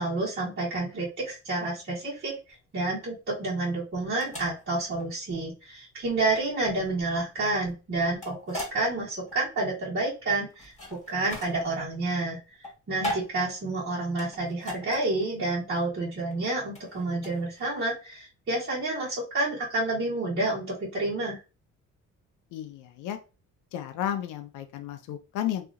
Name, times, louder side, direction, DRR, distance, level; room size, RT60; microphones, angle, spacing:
voice 1, 0.0-2.4 2.7-10.7 11.1-12.4 12.9-21.4, right 2 dB, 40° right, -8 dB, 1.4 m, -29 dB
sound 1, 2.5-17.9, left 1 dB, 25° left, 1.3 m, -40 dB
voice 2, 22.5-23.2 23.7-25.7, left 11 dB, 85° left, 7 dB, 0.5 m, -33 dB
2.8 x 2.5 x 2.5 m, 0.30 s
cardioid pair, 90°, 30 cm